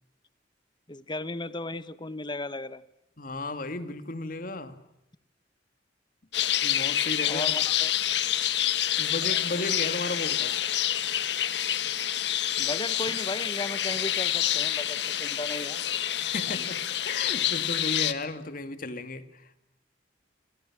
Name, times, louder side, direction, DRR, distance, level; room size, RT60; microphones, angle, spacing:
voice 1, 0.9-2.8 7.3-7.9 12.6-15.8 16.5-16.6, left 2 dB, 25° left, 1.2 m, -35 dB
voice 2, 3.2-4.8 6.6-7.5 9.0-10.6 16.2-19.6, left 2 dB, 50° left, 2.3 m, -35 dB
sound 1, 6.3-18.1, left 11 dB, 65° left, 1.6 m, -27 dB
29.5 x 28.0 x 6.1 m
head